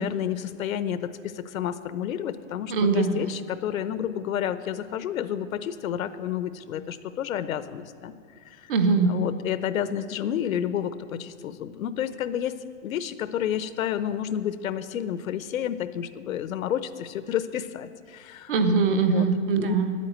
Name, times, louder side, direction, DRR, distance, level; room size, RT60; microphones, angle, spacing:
voice 1, 0.0-8.1 8.6-8.7 9.1-18.5 18.9-19.2 19.6-19.8, left 10 dB, 85° left, 13 dB, 0.8 m, -30 dB
voice 2, 2.7-3.2 8.7-9.2 18.5-19.9, right 4 dB, 40° right, 9 dB, 0.9 m, -22 dB
10.0 x 8.5 x 8.9 m, 2.1 s
supercardioid pair, 180°, 40 cm